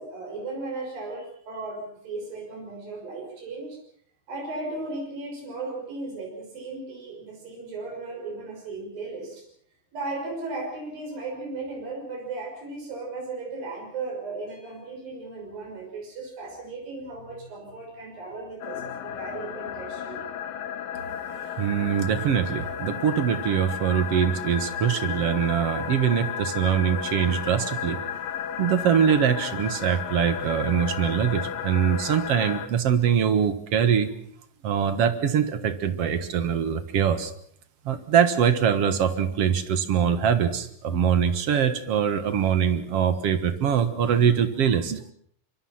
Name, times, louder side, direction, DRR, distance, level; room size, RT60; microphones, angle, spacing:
voice 1, 0.0-3.8 4.3-9.4 9.9-20.2, right 3 dB, 80° right, 0 dB, 7.8 m, -36 dB
sound 1, 18.6-32.7, left 8 dB, 85° left, 3.0 m, -33 dB
voice 2, 21.6-28.0 28.6-34.1 34.6-37.3 37.9-45.0, right 8 dB, 55° right, 11 dB, 2.0 m, -23 dB
25.5 x 24.0 x 5.9 m, 0.63 s
omnidirectional pair, 4.0 m